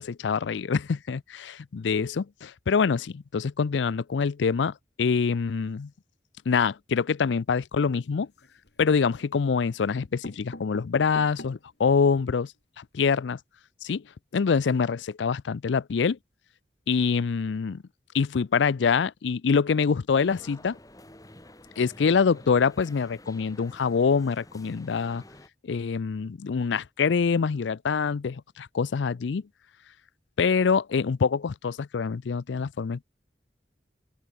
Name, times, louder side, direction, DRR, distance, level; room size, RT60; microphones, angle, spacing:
voice 1, 0.0-5.9 6.5-8.3 8.8-12.5 12.8-13.4 13.8-14.0 14.3-16.2 16.9-17.8 18.1-20.8 21.8-25.2 25.6-29.4 30.4-33.0, left 5 dB, 85° left, 0.5 m, -25 dB
sound 1, 8.2-8.8 9.6-9.7 10.0-11.8 12.3-12.4 12.5-12.6 12.9-13.1, left 1 dB, 70° left, 3.0 m, -44 dB
sound 2, 20.2-25.5, left 1 dB, 20° left, 5.6 m, -50 dB
open air
head